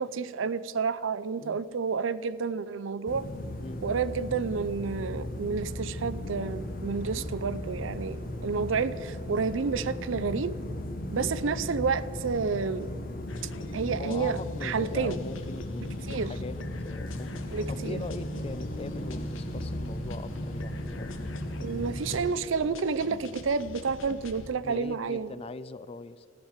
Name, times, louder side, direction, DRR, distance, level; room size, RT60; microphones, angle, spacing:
voice 1, 0.0-3.2 3.8-10.6 11.1-12.9 13.7-15.2 16.1-16.3 17.5-18.0 21.6-25.3, right 5 dB, 80° right, 16 dB, 0.5 m, -30 dB
sound 1, 3.1-22.3, left 1 dB, 50° left, 1.1 m, -36 dB
voice 2, 11.1-11.6 14.0-16.6 16.8-21.1 24.6-26.3, left 3 dB, 30° left, 16 dB, 0.4 m, -41 dB
sound 2, 13.3-24.5, left 2 dB, 90° left, 1.0 m, -46 dB
sound 3, 17.1-24.4, equal, 70° left, 3.4 m, -51 dB
14.5 x 9.8 x 7.2 m, 2.2 s
head